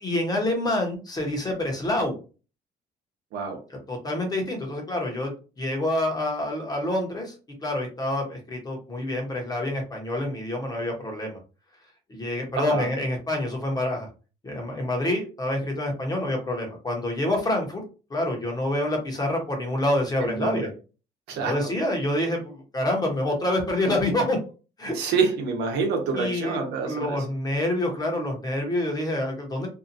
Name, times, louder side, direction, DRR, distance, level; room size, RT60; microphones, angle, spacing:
voice 1, 0.0-2.2 3.9-5.3 5.6-7.3 7.6-11.4 12.1-14.1 14.4-17.8 18.1-20.7 21.3-24.4 24.8-25.0 26.1-26.6 26.9-29.7, left 1 dB, 20° left, 1 dB, 1.0 m, -27 dB
voice 2, 12.5-12.9 20.2-20.7 21.3-21.7 24.9-27.2, right 4 dB, 80° right, 3 dB, 0.9 m, -27 dB
2.7 x 2.4 x 2.6 m, 0.34 s
cardioid pair, 110°, 17 cm